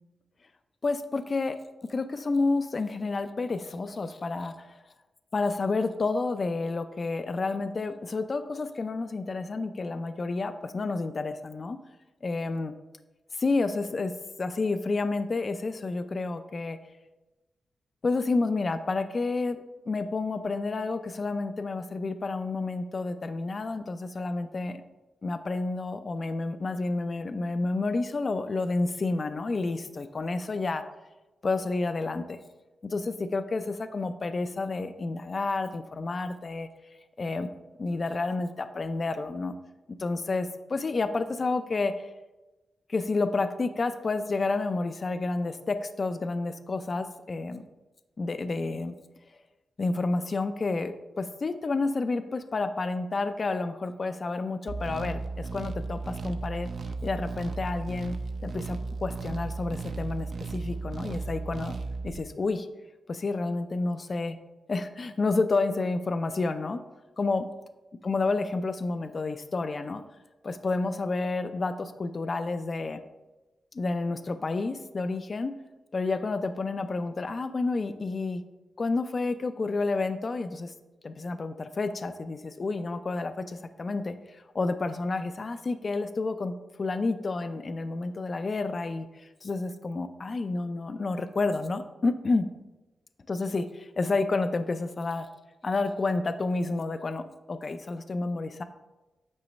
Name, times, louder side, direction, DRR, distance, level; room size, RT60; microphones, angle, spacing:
voice 1, 0.8-1.6 1.9-4.8 5.3-11.8 12.2-12.7 13.3-14.1 14.4-16.8 18.0-24.8 25.2-30.8 31.4-32.4 32.8-36.7 37.2-37.5 37.8-39.5 40.0-42.1 42.9-47.6 48.2-48.9 49.8-56.7 57.0-58.1 58.4-61.8 62.0-62.7 63.1-64.4 64.7-66.8 67.2-67.5 68.0-70.0 70.4-73.0 73.7-75.5 75.9-78.4 78.8-80.7 81.0-86.5 86.8-92.5 93.3-95.3 95.6-98.6, left 3 dB, 40° left, 10 dB, 0.4 m, -30 dB
sound 1, 54.7-62.2, right 3 dB, 55° right, 0.5 m, -35 dB
8.6 x 3.1 x 5.2 m, 1.1 s
wide cardioid pair, 115°, 0 cm